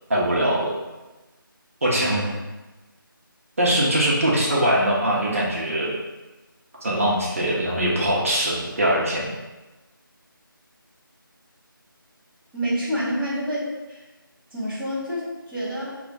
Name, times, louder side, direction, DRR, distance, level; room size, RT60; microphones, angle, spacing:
voice 1, 0.1-0.7 1.8-2.2 3.6-5.9 6.8-9.2, right 1 dB, 40° right, -4 dB, 0.9 m, -22 dB
voice 2, 1.9-2.4 12.5-14.0 14.5-16.0, equal, 5° right, -16 dB, 0.8 m, -28 dB
5.0 x 2.4 x 4.0 m, 1.1 s
figure-of-eight pair, 165°, 12 cm